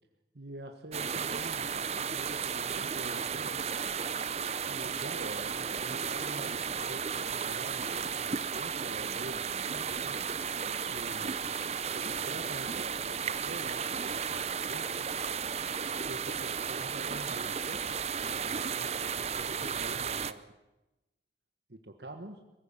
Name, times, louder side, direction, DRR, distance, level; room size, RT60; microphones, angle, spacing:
voice 1, 0.3-3.6 4.6-10.3 10.9-11.4 11.9-15.1 16.0-20.4 21.7-22.4, right 1 dB, 65° right, 5 dB, 1.5 m, -46 dB
sound 1, 0.9-20.3, right 6 dB, 35° right, 0.7 m, -34 dB
23.0 x 15.5 x 8.9 m, 0.99 s
head